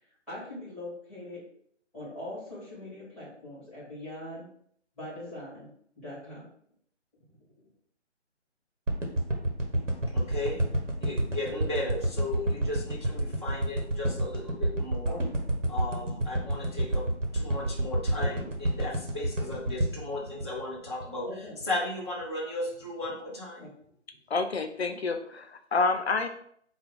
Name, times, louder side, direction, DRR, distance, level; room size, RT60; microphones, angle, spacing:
voice 1, 0.3-1.4 1.9-4.5 5.0-5.7 6.0-6.5 15.1-15.4 18.2-18.4 21.2-21.5 23.6-23.7, left 1 dB, ahead, -10 dB, 0.9 m, -41 dB
sound 1, 8.9-21.2 21.6-21.7, right 1 dB, 85° right, 1.2 m, -29 dB
voice 2, 10.1-10.6 11.0-15.2 15.7-17.1 17.3-21.3 21.6-23.7, left 2 dB, 25° right, -5 dB, 0.4 m, -35 dB
voice 3, 24.3-26.3, left 4 dB, 60° left, 7 dB, 0.5 m, -28 dB
4.3 x 2.3 x 3.4 m, 0.64 s
figure-of-eight pair, 155°, 37 cm